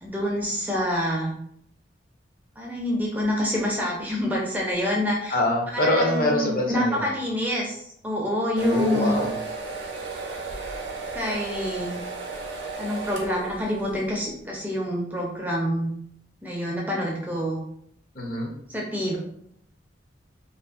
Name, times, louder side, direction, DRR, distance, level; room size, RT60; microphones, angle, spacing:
voice 1, 0.0-1.3 2.6-5.4 5.7-9.2 11.1-12.0 12.8-15.9 16.4-17.6 18.7-19.2, equal, 10° right, -3 dB, 0.4 m, -27 dB
voice 2, 5.3-7.0 8.6-9.3 18.2-18.5, left 1 dB, 50° left, -1 dB, 0.6 m, -24 dB
sound 1, 8.6-14.1, right 4 dB, 70° right, 0.5 m, -34 dB
2.5 x 2.5 x 2.3 m, 0.69 s
head